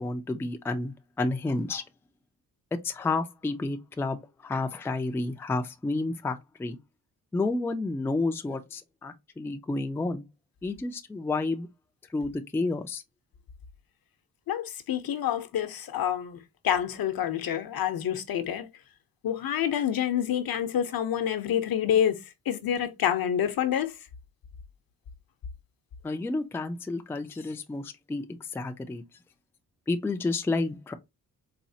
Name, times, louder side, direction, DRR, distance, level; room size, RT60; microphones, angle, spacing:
voice 1, 0.0-1.8 2.7-6.8 7.3-10.3 10.6-11.7 12.1-13.0 26.0-29.0 29.9-30.9, left 3 dB, 5° left, 0.3 m, -30 dB
voice 2, 14.5-18.7 19.2-24.0, left 10 dB, 70° left, 0.8 m, -28 dB
4.2 x 2.4 x 2.7 m
wide cardioid pair, 120°, 37 cm